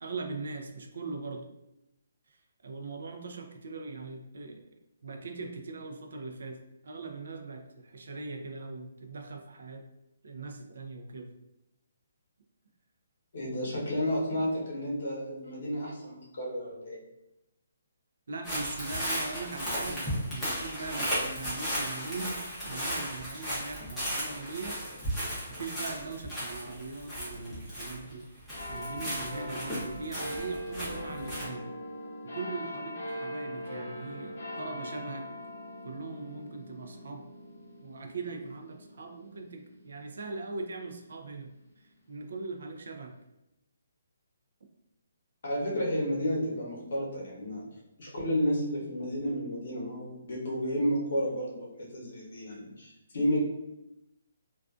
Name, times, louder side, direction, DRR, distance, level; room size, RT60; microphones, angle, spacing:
voice 1, 0.0-1.5 2.3-4.6 5.0-6.6 6.8-9.8 10.2-11.3 18.3-24.8 25.2-28.3 28.7-31.7 32.2-35.3 35.8-37.3 37.8-41.5 41.8-43.1, right 3 dB, 65° right, 4 dB, 0.3 m, -40 dB
voice 2, 13.3-17.0 21.1-21.2 45.4-47.6 48.0-53.4, equal, 55° left, -4 dB, 0.9 m, -31 dB
sound 1, 18.4-28.2 28.5-31.4, equal, ahead, 0.6 m, -35 dB
sound 2, 28.5-41.4 42.1-42.2, left 1 dB, 75° left, 0.6 m, -41 dB
2.4 x 2.3 x 2.3 m, 0.88 s
hypercardioid pair, 175°, 0 cm